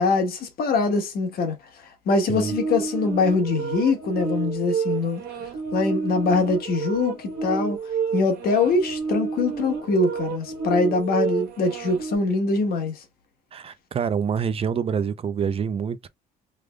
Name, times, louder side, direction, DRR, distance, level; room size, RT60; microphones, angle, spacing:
voice 1, 0.0-5.2 5.7-7.8 8.1-13.0, left 3 dB, 65° left, 1.3 m, -23 dB
creepy reverse loop, 2.3-12.2, right 5 dB, 65° right, 1.5 m, -30 dB
voice 2, 13.5-16.0, right 7 dB, 35° right, 0.4 m, -26 dB
3.4 x 3.4 x 2.2 m
cardioid pair, 110°, 17 cm